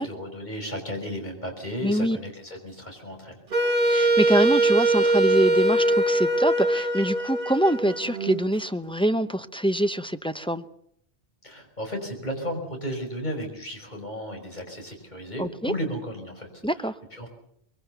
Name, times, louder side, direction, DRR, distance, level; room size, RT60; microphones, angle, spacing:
voice 1, 0.0-3.4 11.4-17.3, equal, 45° left, 3 dB, 5.8 m, -34 dB
voice 2, 1.8-2.2 3.9-10.6 15.4-15.7 16.6-16.9, equal, 5° left, 9 dB, 0.7 m, -24 dB
Wind instrument woodwind instrument, 3.5-8.4, right 2 dB, 55° right, 1.6 m, -22 dB
23.5 x 22.5 x 6.8 m, 0.70 s
omnidirectional pair, 1.1 m